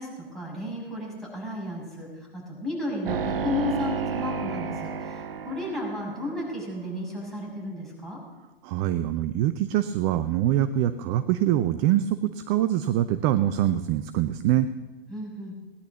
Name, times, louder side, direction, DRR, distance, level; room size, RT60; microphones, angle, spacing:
voice 1, 0.0-2.1 2.3-8.2 15.1-15.5, left 2 dB, ahead, -4 dB, 6.3 m, -33 dB
sound 1, 3.1-6.5, right 6 dB, 65° right, 0.9 m, -31 dB
voice 2, 8.6-14.7, right 12 dB, 25° right, 11 dB, 0.6 m, -24 dB
19.0 x 10.5 x 7.0 m, 1.1 s
figure-of-eight pair, 110°, 30 cm